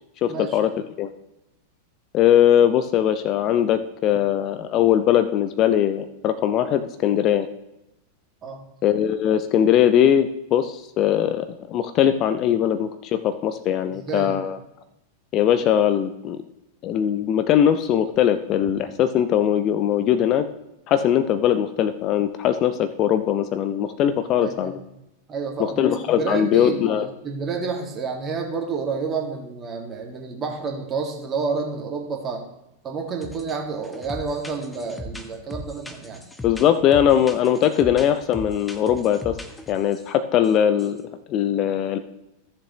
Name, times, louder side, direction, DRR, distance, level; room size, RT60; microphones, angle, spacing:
voice 1, 0.2-0.7 1.0-1.1 2.1-7.5 8.8-14.6 15.3-16.4 16.8-20.5 20.9-24.8 25.6-27.1 36.4-39.4 39.7-41.0 41.3-42.0, left 10 dB, 35° left, 11 dB, 0.5 m, -20 dB
voice 2, 13.9-14.4 24.4-24.8 25.3-32.4 32.8-36.2, right 5 dB, 25° right, 2 dB, 1.9 m, -29 dB
sound 1, 33.2-33.6 33.8-40.1 40.4-40.5 40.8-41.0, left 1 dB, 5° left, 1.0 m, -38 dB
14.0 x 7.0 x 3.0 m, 0.87 s
figure-of-eight pair, 90°, 0 cm